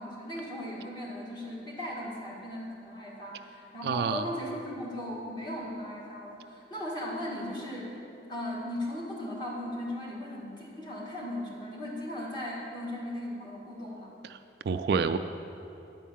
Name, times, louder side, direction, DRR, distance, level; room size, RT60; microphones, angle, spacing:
voice 1, 0.0-8.0 8.3-14.1, left 1 dB, 25° left, -5 dB, 1.8 m, -37 dB
voice 2, 3.8-4.3 14.3-14.4 14.6-15.2, right 5 dB, 60° right, 9 dB, 0.3 m, -28 dB
10.5 x 4.6 x 7.3 m, 2.8 s
head